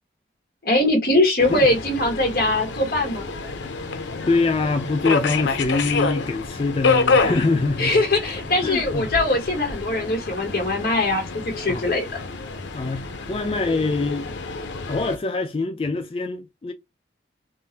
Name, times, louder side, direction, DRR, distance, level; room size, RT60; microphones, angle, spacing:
voice 1, 0.6-3.3 7.8-11.2 11.6-12.2, left 2 dB, 55° left, 1.2 m, -21 dB
Subway metro underground, 1.4-15.2, left 4 dB, 90° left, 0.6 m, -28 dB
voice 2, 4.3-8.0 8.6-9.1 11.7-12.0 12.7-14.3 14.9-16.7, left 3 dB, 30° left, 0.3 m, -24 dB
3.6 x 2.1 x 2.6 m
head